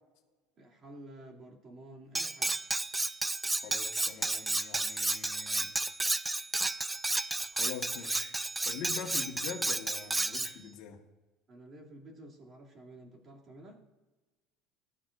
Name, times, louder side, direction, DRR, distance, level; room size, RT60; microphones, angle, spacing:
voice 1, 0.6-2.5 11.5-13.8, right 1 dB, 30° right, 2.5 m, -51 dB
Cutlery silverware, 2.2-10.5, right 2 dB, 10° right, 0.4 m, -32 dB
voice 2, 3.6-5.7 7.5-11.0, left 8 dB, 65° left, 1.4 m, -44 dB
19.5 x 11.0 x 2.5 m
cardioid pair, 140°, 0 cm